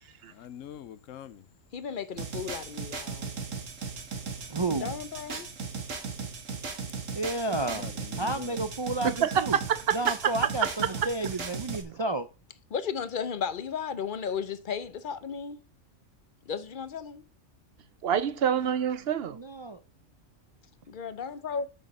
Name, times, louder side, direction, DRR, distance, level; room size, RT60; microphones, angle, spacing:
voice 1, 0.3-1.5 7.7-8.6, left 10 dB, 85° left, 1.1 m, -44 dB
voice 2, 1.7-3.4 4.8-5.5 12.7-15.6 16.5-17.2 20.9-21.7, left 7 dB, 50° left, 0.8 m, -34 dB
sound 1, 2.2-11.8, right 5 dB, 80° right, 1.9 m, -37 dB
voice 3, 4.5-4.9 7.1-7.8 8.2-9.6 9.9-12.3 19.3-19.8, right 2 dB, 45° right, 0.3 m, -31 dB
voice 4, 9.0-11.1 18.0-19.4, right 8 dB, 60° right, 0.8 m, -27 dB
7.6 x 6.3 x 5.4 m
omnidirectional pair, 1.3 m